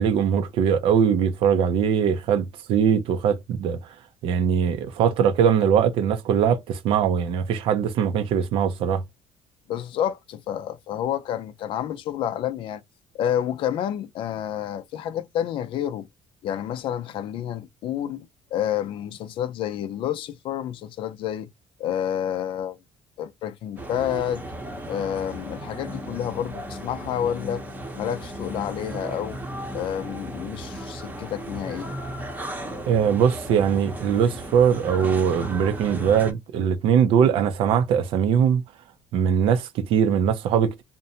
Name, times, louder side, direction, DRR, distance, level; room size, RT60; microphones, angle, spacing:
voice 1, 0.0-3.8 4.2-9.0 32.9-38.6 39.1-40.8, right 8 dB, 70° right, 0.5 m, -21 dB
voice 2, 9.7-12.8 13.2-16.1 16.4-18.3 18.5-21.5 21.8-22.8 23.2-24.4 24.9-27.7 28.0-29.4 29.7-31.9, left 10 dB, 65° left, 0.4 m, -29 dB
sound 1, 23.8-36.3, right 1 dB, 15° right, 0.8 m, -35 dB
2.6 x 2.1 x 2.7 m
cardioid pair, 115°, 9 cm